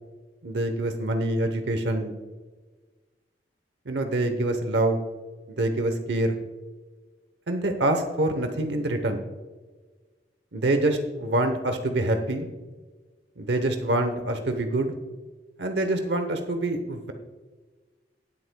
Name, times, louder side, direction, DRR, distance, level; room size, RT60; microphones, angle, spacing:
voice 1, 0.4-2.1 3.9-5.0 5.6-6.4 7.5-9.2 10.5-12.5 13.4-14.9 15.6-17.1, right 1 dB, 75° right, 6 dB, 0.9 m, -25 dB
18.5 x 8.0 x 2.3 m, 1.3 s
head